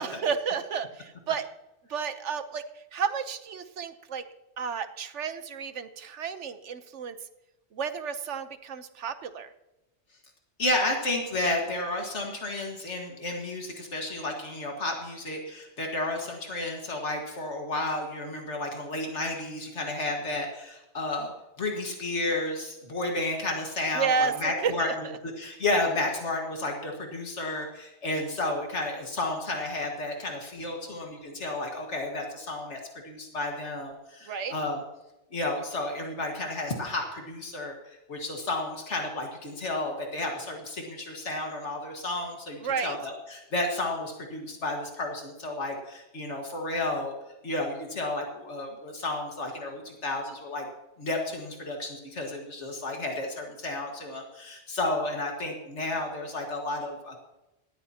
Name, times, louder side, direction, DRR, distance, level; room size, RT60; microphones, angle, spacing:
voice 1, 0.0-1.5 1.9-2.7 2.9-4.3 4.6-7.2 7.7-9.5 23.9-24.9 34.3-34.5 42.6-43.0, right 6 dB, 90° right, 10 dB, 1.2 m, -31 dB
voice 2, 10.6-21.3 21.6-24.9 25.2-34.8 35.3-47.1 47.4-50.7 51.0-57.2, left 2 dB, 80° left, 1 dB, 2.1 m, -32 dB
18.5 x 13.5 x 2.9 m, 0.96 s
omnidirectional pair, 1.2 m